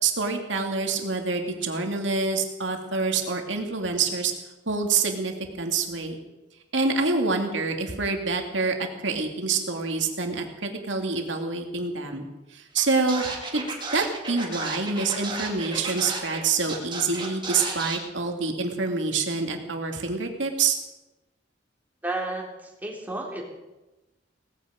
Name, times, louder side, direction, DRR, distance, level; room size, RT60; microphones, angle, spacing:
voice 1, 0.0-4.3 4.7-6.2 6.7-8.8 9.0-12.3 12.5-13.3 13.5-20.8, right 4 dB, 90° right, 3 dB, 2.4 m, -26 dB
Scratching (performance technique), 12.8-12.9 13.1-16.4 16.7-18.0, right 3 dB, 25° right, 2.6 m, -33 dB
voice 2, 22.0-23.4, right 2 dB, 10° right, -1 dB, 3.3 m, -32 dB
18.5 x 15.0 x 5.2 m, 1.0 s
head